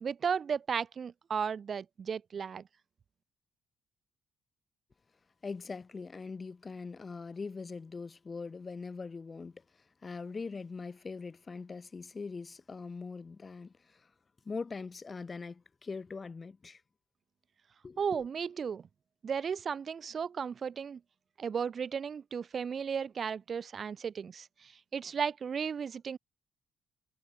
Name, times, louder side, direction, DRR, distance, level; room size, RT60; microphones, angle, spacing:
voice 1, 0.0-2.7 18.0-18.9 19.2-21.0 21.4-26.2, right 6 dB, 50° right, 1.0 m, -35 dB
voice 2, 5.4-9.6 10.0-14.1 14.4-16.8 17.8-18.2, left 4 dB, 30° left, 1.0 m, -42 dB
cardioid pair, 90°, 0 cm